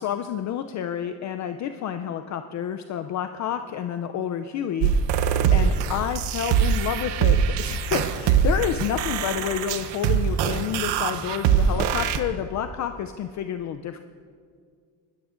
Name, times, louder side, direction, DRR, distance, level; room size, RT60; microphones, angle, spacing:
voice 1, 0.0-4.9 5.5-14.0, left 9 dB, 45° left, 8 dB, 0.4 m, -29 dB
sound 1, 4.8-12.2, right 7 dB, 75° right, 0.8 m, -23 dB
20.0 x 13.5 x 2.5 m, 2.1 s
cardioid pair, 140°, 42 cm